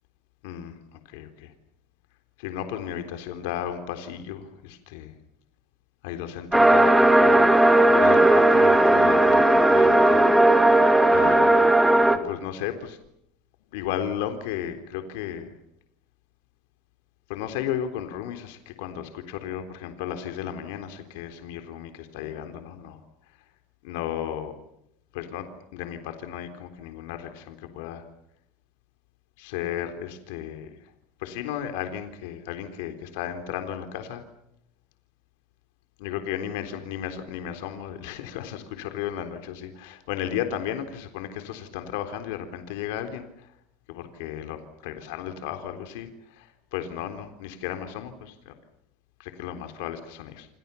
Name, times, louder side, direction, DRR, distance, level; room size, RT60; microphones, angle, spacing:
voice 1, 2.4-5.1 6.0-7.5 8.0-10.2 11.1-11.7 12.1-13.0 13.7-15.5 17.3-23.0 23.8-24.5 25.1-25.4 25.7-28.0 29.4-30.7 31.2-34.2 36.0-43.2 43.9-44.6 44.8-46.1 46.7-48.5 49.2-50.5, left 10 dB, 85° left, 7 dB, 3.8 m, -34 dB
sound 1, 6.5-12.2, right 1 dB, 5° right, 2.6 m, -17 dB
29.0 x 27.5 x 7.1 m, 0.77 s
cardioid pair, 140°, 0 cm